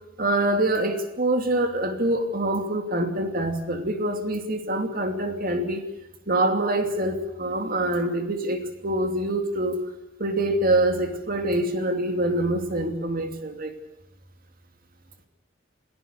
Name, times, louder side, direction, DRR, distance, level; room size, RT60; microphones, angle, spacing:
voice 1, 0.2-5.8 6.3-9.8 10.2-13.7, right 1 dB, 50° right, 6 dB, 2.8 m, -25 dB
28.5 x 17.5 x 6.8 m, 0.91 s
head